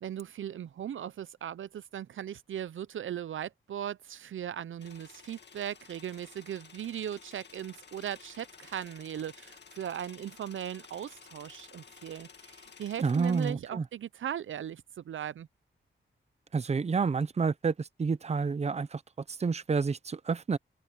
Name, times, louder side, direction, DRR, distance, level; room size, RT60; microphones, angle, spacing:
voice 1, 0.0-15.5, right 10 dB, 75° right, 0.5 m, -38 dB
sound 1, 4.8-13.5, left 6 dB, 60° left, 2.1 m, -53 dB
voice 2, 13.0-13.8 16.5-19.0 19.3-20.6, right 5 dB, 30° right, 0.7 m, -29 dB
wide cardioid pair, 145°, 21 cm